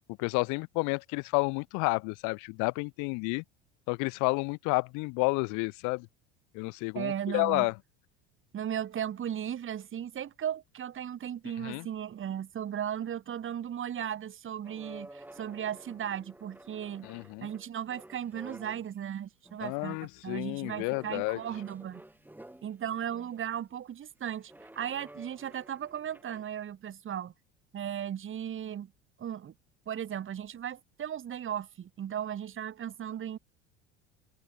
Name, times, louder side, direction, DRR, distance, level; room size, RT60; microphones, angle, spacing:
voice 1, 0.2-3.4 3.9-6.1 6.5-7.7 11.6-11.9 17.0-17.5 19.6-21.4, left 30 dB, 65° left, 1.1 m, -30 dB
voice 2, 6.9-7.7 8.5-17.1 17.4-20.0 20.2-22.0 22.6-27.3 27.7-28.9 29.2-29.5 29.9-33.4, right 9 dB, 40° right, 2.5 m, -36 dB
sound 1, 14.6-19.0 19.4-19.9 20.6-23.4 24.4-26.5, right 1 dB, 5° right, 4.6 m, -51 dB
hypercardioid pair, 75°, 33 cm